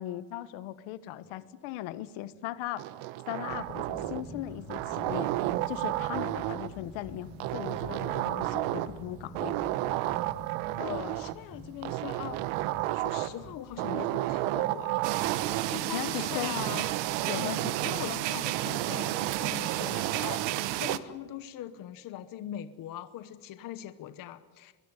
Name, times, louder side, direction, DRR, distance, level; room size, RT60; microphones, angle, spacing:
voice 1, 0.0-2.9 3.3-5.3 5.7-9.6 15.9-16.5 17.3-17.6 18.1-18.2, left 14 dB, 75° left, 14 dB, 1.4 m, -38 dB
sound 1, 1.2-1.4 2.3-2.5 3.1-14.4 15.2-15.4, right 1 dB, 20° right, 7.4 m, -47 dB
sound 2, 2.8-4.3 4.7-6.8 7.4-9.0 9.3-11.4 11.8-13.4 13.8-15.8 16.6-18.1 18.5-20.6, right 16 dB, 85° right, 1.1 m, -32 dB
voice 2, 10.8-15.0 15.3-16.9 17.3-24.7, left 11 dB, 45° left, 11 dB, 1.0 m, -41 dB
sound 3, 15.0-21.0, right 15 dB, 60° right, 1.1 m, -32 dB
23.0 x 22.0 x 9.9 m, 1.4 s
cardioid pair, 180°, 49 cm